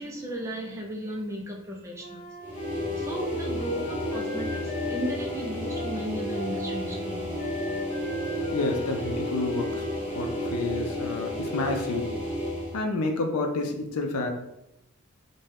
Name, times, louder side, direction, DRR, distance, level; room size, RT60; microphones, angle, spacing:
voice 1, 0.0-2.2 3.0-7.2, equal, 15° right, -1 dB, 0.4 m, -35 dB
Wind instrument woodwind instrument, 2.0-10.5, left 2 dB, 30° left, 0.6 m, -38 dB
sound 1, 2.4-12.8, left 1 dB, 5° left, 1.1 m, -32 dB
voice 2, 8.5-9.8 10.1-12.1 12.7-14.3, left 2 dB, 80° left, 4 dB, 0.5 m, -29 dB
2.6 x 2.2 x 3.3 m, 0.86 s
head